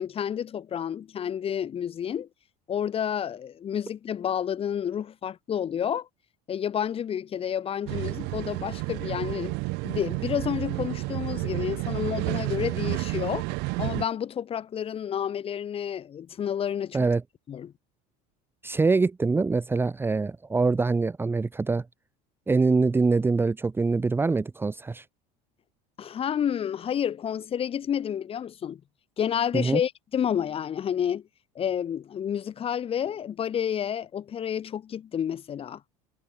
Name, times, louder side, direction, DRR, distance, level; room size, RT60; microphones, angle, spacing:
voice 1, 0.0-2.3 2.7-6.1 6.5-9.5 9.8-13.5 13.8-17.0 17.5-17.7 26.0-28.8 29.2-31.2 31.5-35.8, left 9 dB, 30° left, 4.8 m, -30 dB
sound 1, 7.9-14.0, right 27 dB, 65° right, 5.4 m, -31 dB
voice 2, 18.6-21.8 22.5-25.0 29.5-29.8, right 4 dB, 10° right, 1.4 m, -24 dB
supercardioid pair, 140°, 19 cm